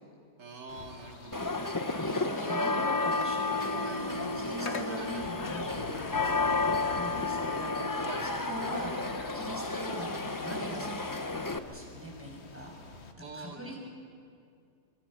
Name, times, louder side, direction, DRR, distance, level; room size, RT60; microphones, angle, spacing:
voice 1, 0.4-1.4 5.0-5.2 8.1-8.2 13.2-13.9, right 3 dB, 85° right, 2 dB, 2.8 m, -45 dB
sound 1, 0.7-13.1, left 4 dB, 45° left, 1.5 m, -46 dB
sound 2, 1.3-11.6, left 3 dB, 25° left, 0.4 m, -32 dB
voice 2, 2.0-12.7 13.2-13.8, equal, 5° right, -2 dB, 6.3 m, -42 dB
24.5 x 24.5 x 6.5 m, 2.3 s
omnidirectional pair, 1.8 m